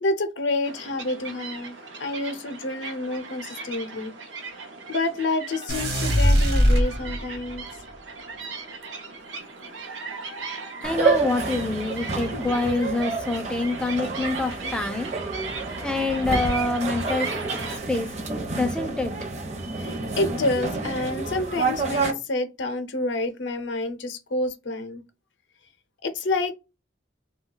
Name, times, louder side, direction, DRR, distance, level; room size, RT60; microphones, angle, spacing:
voice 1, 0.0-4.1 4.9-7.6 9.6-9.7 19.8-25.0 26.0-26.5, left 2 dB, 75° left, 0.5 m, -28 dB
sound 1, 0.6-17.8, right 4 dB, 80° right, 0.6 m, -37 dB
sound 2, 5.7-7.5, equal, 55° right, 0.9 m, -20 dB
voice 2, 10.8-15.1 15.8-17.3 17.7-19.1, left 2 dB, 5° left, 0.3 m, -26 dB
sound 3, 10.8-22.1, right 3 dB, 35° right, 0.6 m, -29 dB
2.3 x 2.2 x 3.6 m
head